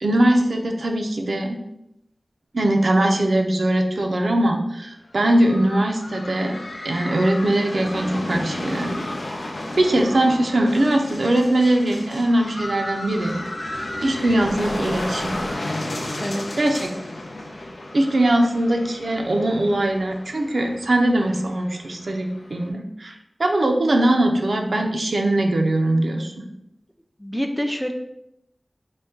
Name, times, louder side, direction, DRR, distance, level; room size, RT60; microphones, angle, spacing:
voice 1, 0.0-1.6 2.5-6.6 6.8-9.1 9.8-13.4 14.0-15.4 16.6-16.9 17.9-26.5, right 1 dB, 75° right, 3 dB, 0.5 m, -21 dB
sound 1, 5.0-22.7, left 1 dB, 90° left, 0.5 m, -33 dB
voice 2, 27.2-27.9, equal, 5° left, 5 dB, 0.4 m, -26 dB
4.0 x 2.2 x 3.5 m, 0.81 s
wide cardioid pair, 60°, 0 cm